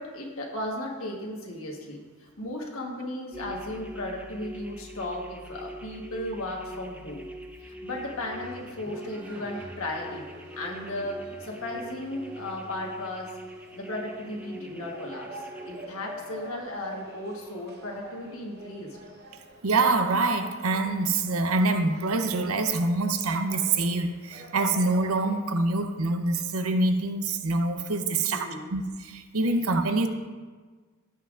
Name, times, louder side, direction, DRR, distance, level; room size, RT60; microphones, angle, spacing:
voice 1, 0.0-7.3 7.6-10.2 10.6-13.3 13.7-19.0 28.3-28.7, left 1 dB, 70° left, -1 dB, 1.3 m, -35 dB
sound 1, 3.3-15.9, equal, 5° right, 0.4 m, -43 dB
sound 2, 7.9-25.4, right 1 dB, 50° right, 1.0 m, -47 dB
voice 2, 19.6-30.1, right 3 dB, 80° right, 7 dB, 0.7 m, -25 dB
15.5 x 5.6 x 2.5 m, 1.4 s
head